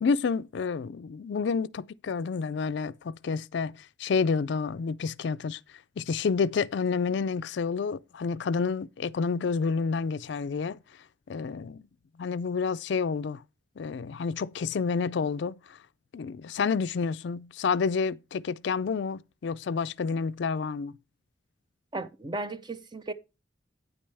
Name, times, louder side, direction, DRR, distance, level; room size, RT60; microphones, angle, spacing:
voice 1, 0.0-10.8 11.3-11.9 12.2-13.4 13.8-15.8 16.1-21.0, left 5 dB, 60° left, 0.4 m, -29 dB
voice 2, 21.9-23.1, right 2 dB, 20° right, 0.6 m, -35 dB
9.3 x 8.5 x 3.4 m
head